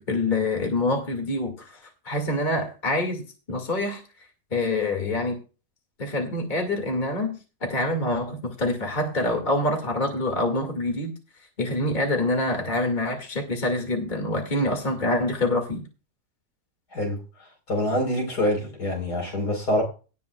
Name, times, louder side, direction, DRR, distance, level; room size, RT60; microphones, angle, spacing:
voice 1, 0.0-1.8 2.0-3.2 3.5-4.0 4.5-5.4 6.0-11.1 11.6-15.8, left 2 dB, 30° left, 2.4 m, -26 dB
voice 2, 17.7-19.8, left 1 dB, 70° left, 4.8 m, -25 dB
18.0 x 9.3 x 2.4 m
omnidirectional pair, 1.8 m